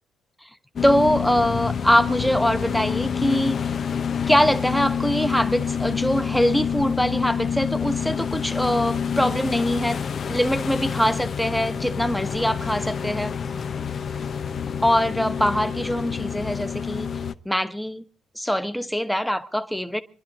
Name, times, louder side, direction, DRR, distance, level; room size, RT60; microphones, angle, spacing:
sound 1, 0.8-17.3, left 7 dB, 50° left, 0.8 m, -27 dB
voice 1, 0.8-3.7 4.3-10.0 10.3-13.3 14.8-17.1 17.4-18.0 18.3-20.0, equal, ahead, 1.2 m, -23 dB
27.0 x 11.0 x 4.1 m
cardioid pair, 90°, 0 cm